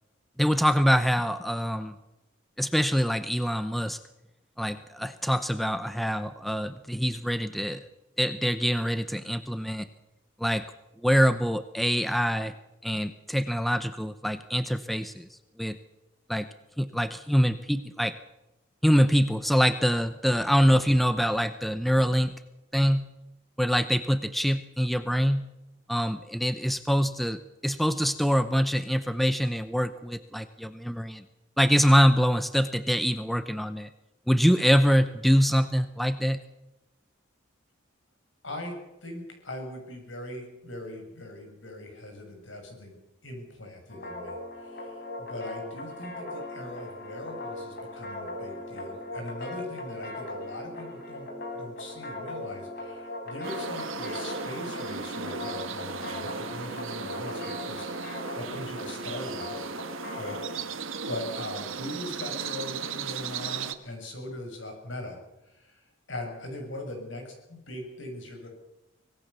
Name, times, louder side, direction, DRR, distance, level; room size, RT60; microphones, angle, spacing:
voice 1, 0.4-1.9 2.6-4.0 4.6-7.8 8.2-9.9 10.4-10.6 11.0-12.5 12.8-15.8 16.3-16.5 16.8-18.2 18.8-22.3 22.7-23.1 23.6-25.5 25.9-31.2 31.6-33.9 34.3-36.4, equal, ahead, 11 dB, 0.7 m, -24 dB
voice 2, 39.0-43.0 43.2-51.3 51.6-59.7 60.2-65.2 65.5-68.5, left 1 dB, 70° left, 3 dB, 7.0 m, -40 dB
sound 1, 43.9-60.6, left 1 dB, 50° left, 6.0 m, -39 dB
sound 2, 53.4-63.7, right 5 dB, 80° right, 1.5 m, -36 dB
25.0 x 18.5 x 6.9 m, 0.94 s
head